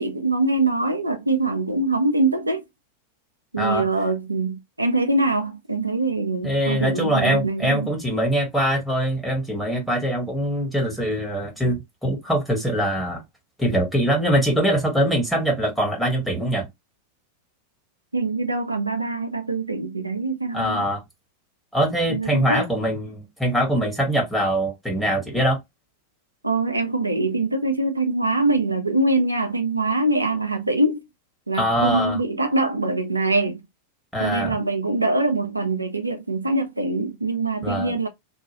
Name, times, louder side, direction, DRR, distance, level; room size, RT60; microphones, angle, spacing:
voice 1, 0.0-2.6 3.5-7.9 18.1-20.9 22.1-22.7 26.4-31.0 31.5-33.6 34.2-38.1, right 2 dB, 85° right, 0.5 m, -23 dB
voice 2, 6.4-13.2 13.6-16.7 20.5-21.0 21.7-25.6 31.5-32.2 34.1-34.5 37.6-37.9, right 1 dB, ahead, 1.4 m, -23 dB
2.8 x 2.3 x 2.8 m
figure-of-eight pair, 90°, 0 cm